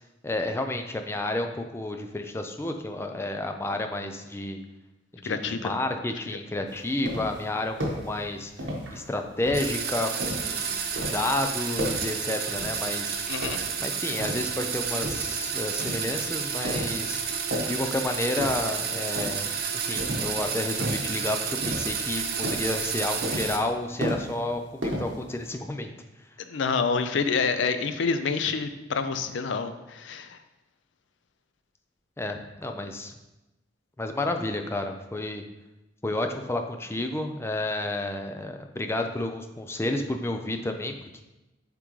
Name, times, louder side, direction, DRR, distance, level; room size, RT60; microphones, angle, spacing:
voice 1, 0.2-4.6 5.2-8.5 8.9-13.2 13.8-17.2 17.7-19.5 19.8-25.9 32.2-33.1 34.0-35.4 36.0-40.9, left 2 dB, 15° left, 5 dB, 0.4 m, -31 dB
voice 2, 5.3-5.7 13.3-13.6 26.4-30.4, left 5 dB, 80° left, 9 dB, 0.5 m, -27 dB
sound 1, 6.7-7.4 7.8-8.1 8.6-9.0 9.4-10.6 11.0-11.3 11.7-12.2 12.6-13.0 13.4-14.5 15.0-15.4 15.8-16.1 16.6-17.1 17.3-17.9 18.4-18.8 19.2-19.6 20.0-20.4 20.8-21.2 21.6-22.2 22.4-22.7 23.2-23.7 24.0-24.5 24.8-25.5, equal, 75° right, 1.2 m, -33 dB
sound 2, 9.5-23.6, right 6 dB, 55° right, 0.6 m, -31 dB
8.1 x 3.7 x 3.1 m, 1.0 s
head